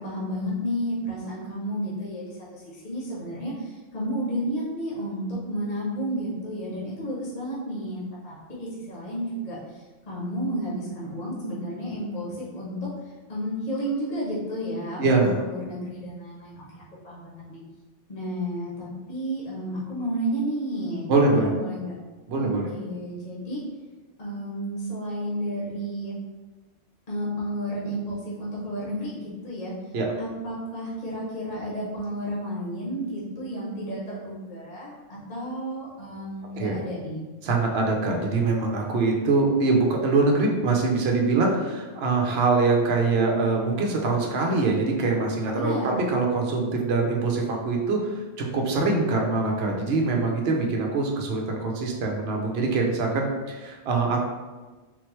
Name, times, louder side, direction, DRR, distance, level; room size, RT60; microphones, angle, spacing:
voice 1, 0.0-12.8 13.3-17.6 18.1-21.9 22.4-23.6 24.2-26.2 27.1-29.8 30.2-37.3 45.5-46.0, equal, 40° left, -6 dB, 1.1 m, -32 dB
voice 2, 15.0-15.4 21.1-21.5 22.3-22.7 29.9-30.1 36.5-36.8 37.4-54.3, right 3 dB, 60° right, 0 dB, 0.9 m, -23 dB
3.9 x 3.2 x 3.0 m, 1.2 s
omnidirectional pair, 1.3 m